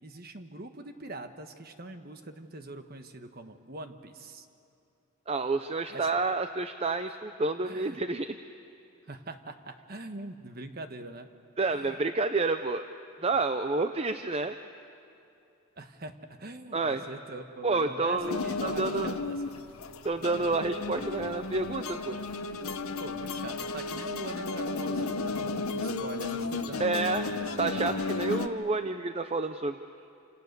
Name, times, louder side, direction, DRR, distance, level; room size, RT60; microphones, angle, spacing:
voice 1, 0.0-4.5 5.9-6.1 7.6-8.0 9.1-11.3 11.7-12.0 15.8-19.3 23.0-27.3 28.6-28.8, right 2 dB, 45° right, 7 dB, 1.3 m, -43 dB
voice 2, 5.3-8.4 11.6-12.9 13.2-14.5 16.7-17.0 17.6-19.2 20.0-22.2 26.8-27.3 27.6-29.8, right 3 dB, 25° right, 9 dB, 0.5 m, -29 dB
sound 1, 18.2-28.5, left 3 dB, 80° left, 1.0 m, -33 dB
28.0 x 27.0 x 6.8 m, 2.7 s
head